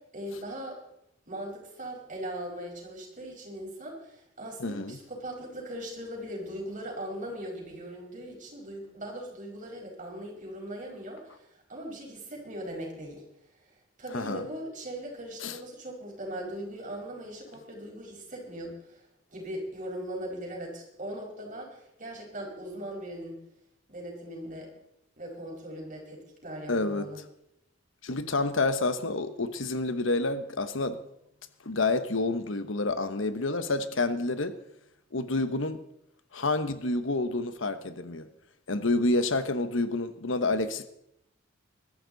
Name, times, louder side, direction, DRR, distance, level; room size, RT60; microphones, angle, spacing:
voice 1, 0.1-0.8 1.3-13.2 14.0-19.0 19.3-23.4 23.9-24.7 25.2-27.2, right 1 dB, 40° right, 0 dB, 5.0 m, -39 dB
voice 2, 4.6-5.0 14.1-14.4 15.4-15.6 26.7-27.1 28.0-31.0 31.6-34.6 35.1-35.8 36.3-38.3 38.7-40.9, left 2 dB, 75° left, 11 dB, 1.2 m, -28 dB
21.0 x 13.0 x 4.1 m, 0.79 s
head